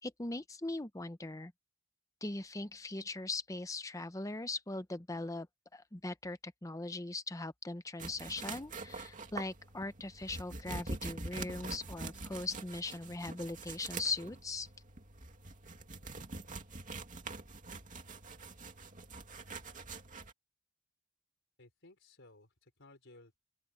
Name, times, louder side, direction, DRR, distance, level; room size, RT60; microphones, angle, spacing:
voice 1, 0.0-1.5 2.2-5.5 5.7-14.7, left 2 dB, 15° left, 0.9 m, -40 dB
sound 1, 8.0-20.3, right 3 dB, 40° right, 2.6 m, -45 dB
voice 2, 21.6-23.4, left 2 dB, 60° left, 4.9 m, -59 dB
open air
head